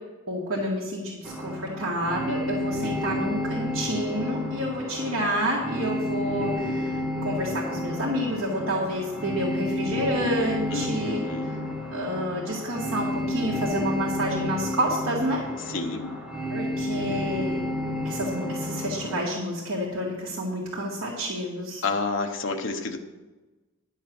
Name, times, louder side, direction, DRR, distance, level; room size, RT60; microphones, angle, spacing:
voice 1, 0.3-11.2 11.9-15.4 16.5-17.6 18.0-21.8, equal, 80° right, -5 dB, 1.9 m, -29 dB
sound 1, 1.2-19.1, left 1 dB, 5° right, 1.8 m, -31 dB
voice 2, 10.7-11.5 15.6-16.1 21.8-23.0, left 3 dB, 65° left, 4 dB, 1.0 m, -30 dB
11.0 x 6.6 x 6.2 m, 1.2 s
head